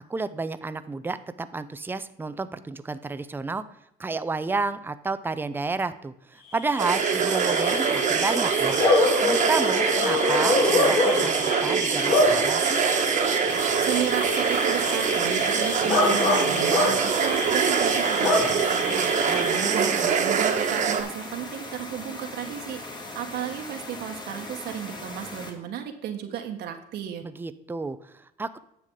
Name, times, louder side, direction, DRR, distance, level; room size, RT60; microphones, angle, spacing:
voice 1, 0.1-3.6 4.0-8.8 9.2-12.8 19.3-20.1 27.2-28.6, right 3 dB, 10° right, 12 dB, 0.5 m, -31 dB
Bark / Cricket, 6.6-19.9, left 2 dB, 65° left, 3.5 m, -26 dB
sound 1, 6.8-21.0, right 6 dB, 50° right, 1.4 m, -24 dB
sound 2, 13.5-25.5, left 2 dB, 25° left, 1.8 m, -39 dB
voice 2, 13.8-27.2, right 9 dB, 75° right, 4 dB, 1.4 m, -34 dB
9.7 x 7.0 x 3.7 m, 0.80 s
cardioid pair, 110°, 17 cm